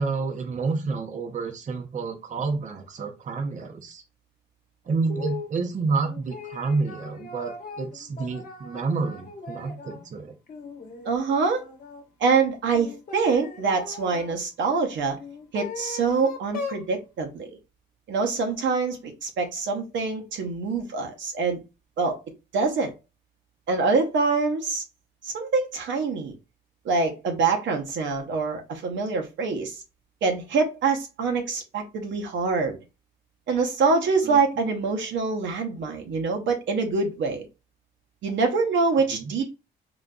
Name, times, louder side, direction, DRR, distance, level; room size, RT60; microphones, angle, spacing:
voice 1, 0.0-4.0 4.8-10.3 34.2-34.4 39.1-39.3, right 4 dB, 40° right, 0.6 m, -29 dB
sound 1, 5.1-5.5 6.0-10.0 10.5-12.0 12.7-14.4 15.2-16.9, left 4 dB, 45° left, 0.9 m, -39 dB
voice 2, 11.0-11.6 12.2-15.2 15.5-17.5 18.1-21.6 22.0-22.2 22.5-22.9 23.7-24.8 25.2-26.3 26.8-29.8 30.2-32.8 33.5-37.5 38.2-39.4, right 4 dB, 70° right, 0.8 m, -25 dB
3.8 x 2.5 x 2.3 m
cardioid pair, 90°, 20 cm